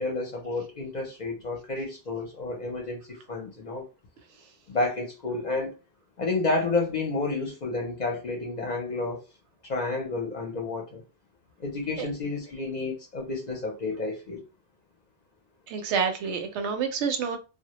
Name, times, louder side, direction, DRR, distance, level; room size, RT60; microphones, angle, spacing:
voice 1, 0.0-3.8 4.7-5.7 6.2-9.2 9.6-11.0 11.6-14.4, left 3 dB, 50° left, 0.6 m, -30 dB
voice 2, 15.7-17.4, right 6 dB, 85° right, 0.9 m, -28 dB
2.1 x 2.0 x 2.9 m
omnidirectional pair, 1.2 m